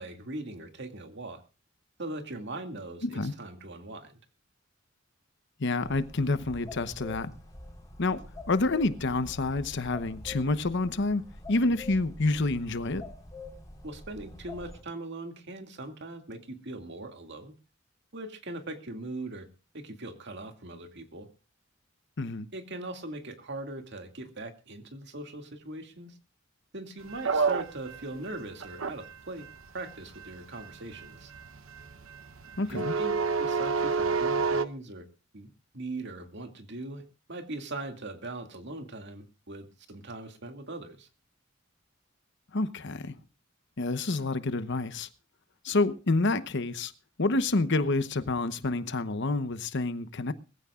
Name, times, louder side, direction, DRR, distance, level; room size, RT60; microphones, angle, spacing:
voice 1, 0.0-1.4 2.0-4.2 13.8-17.5 18.1-19.5 19.7-21.3 22.5-26.2 26.7-29.5 29.7-31.3 32.7-35.1 35.3-35.5 35.7-37.0 37.3-41.1, right 2 dB, 60° right, 2.3 m, -40 dB
voice 2, 3.0-3.3 5.6-7.3 8.0-8.2 8.5-13.0 22.2-22.5 32.6-32.9 42.5-43.2 43.8-45.1 45.6-46.9 47.2-50.3, left 2 dB, 60° left, 0.9 m, -28 dB
sound 1, 5.8-14.8, left 2 dB, 20° left, 4.3 m, -46 dB
sound 2, 27.1-34.6, right 4 dB, 85° right, 0.9 m, -30 dB
21.5 x 15.0 x 2.4 m
head